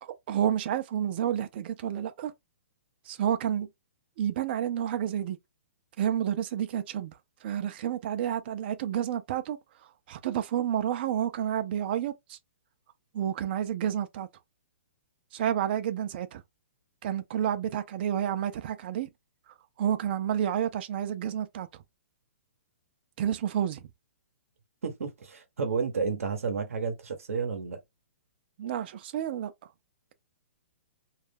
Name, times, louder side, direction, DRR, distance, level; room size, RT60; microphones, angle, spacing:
voice 1, 0.0-2.3 3.1-3.7 4.2-5.4 6.0-9.6 10.1-12.4 13.1-14.3 15.3-16.4 17.0-19.1 19.8-21.7 23.2-23.9 28.6-29.5, right 10 dB, 45° right, 0.4 m, -30 dB
voice 2, 24.8-27.8, right 5 dB, 85° right, 0.8 m, -31 dB
2.3 x 2.1 x 3.3 m
hypercardioid pair, 145°, 7 cm